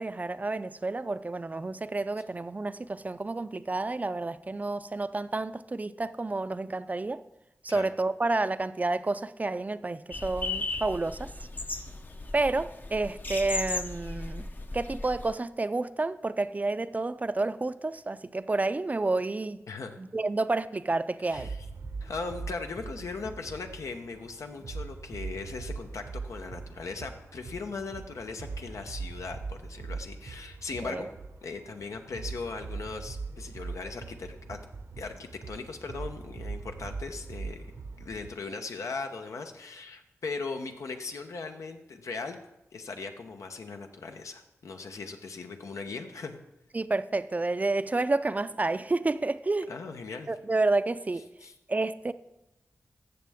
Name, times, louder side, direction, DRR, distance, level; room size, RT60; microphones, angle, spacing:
voice 1, 0.0-7.2 7.6-11.3 12.3-14.5 14.7-19.6 20.0-21.5 30.8-31.1 46.7-49.7 50.3-51.2 51.7-52.1, right 2 dB, 30° right, 0.4 m, -30 dB
sound 1, 10.1-15.3, left 2 dB, 40° left, 0.6 m, -36 dB
voice 2, 19.7-20.0 21.3-21.6 22.0-31.1 31.4-34.6 35.0-37.7 38.0-42.4 42.7-46.4 49.7-50.3 51.4-51.5, left 4 dB, 90° left, 0.8 m, -39 dB
sound 2, 21.3-38.3, right 4 dB, 75° right, 0.8 m, -41 dB
14.5 x 6.6 x 3.5 m
wide cardioid pair, 75°, 5 cm